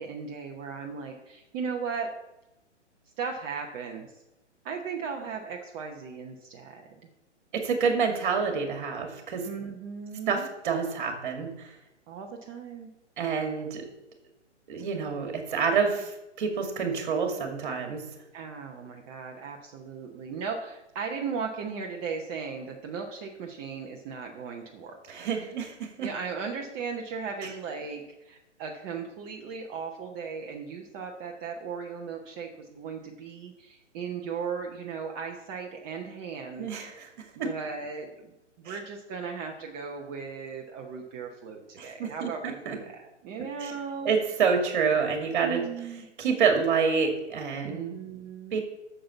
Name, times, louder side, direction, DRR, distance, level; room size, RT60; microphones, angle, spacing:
voice 1, 0.0-2.1 3.2-4.2 4.6-6.9 9.4-10.5 12.1-12.9 18.3-25.0 26.0-36.7 37.4-38.3 38.6-44.1 45.4-46.0 47.6-48.6, right 5 dB, 20° right, 1 dB, 0.8 m, -37 dB
voice 2, 7.5-9.5 10.3-11.7 13.2-13.9 14.7-18.0 25.1-26.1 36.6-37.5 38.7-38.8 41.8-42.8 43.4-43.7 44.0-45.6 46.2-47.9 48.5-48.6, right 5 dB, 40° right, 4 dB, 2.4 m, -28 dB
8.7 x 6.8 x 7.1 m, 0.94 s
figure-of-eight pair, 125°, 36 cm